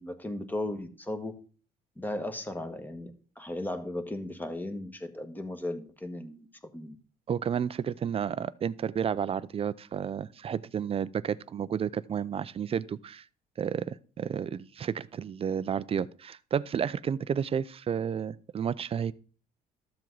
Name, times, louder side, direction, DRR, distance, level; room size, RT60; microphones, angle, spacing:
voice 1, 0.0-1.4 2.0-3.1 3.4-6.5 6.7-6.9, left 1 dB, 10° left, 1.4 m, -36 dB
voice 2, 7.3-13.2 13.6-19.1, right 8 dB, 35° right, 0.5 m, -31 dB
13.0 x 7.4 x 4.0 m
cardioid pair, 110°, 17 cm